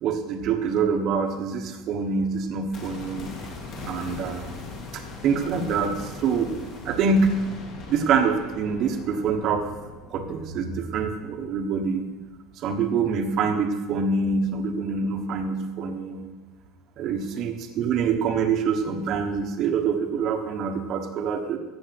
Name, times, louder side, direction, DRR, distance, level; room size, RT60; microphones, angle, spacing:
voice 1, 0.0-3.3 3.8-4.6 4.9-6.5 6.8-7.4 7.9-9.6 10.1-12.1 12.6-16.3 17.0-21.6, right 5 dB, 35° right, 6 dB, 1.3 m, -25 dB
sound 1, 2.7-12.7 13.0-13.1, left 3 dB, 35° left, 2.1 m, -40 dB
14.0 x 8.1 x 6.0 m, 1.2 s
cardioid pair, 180°, 0 cm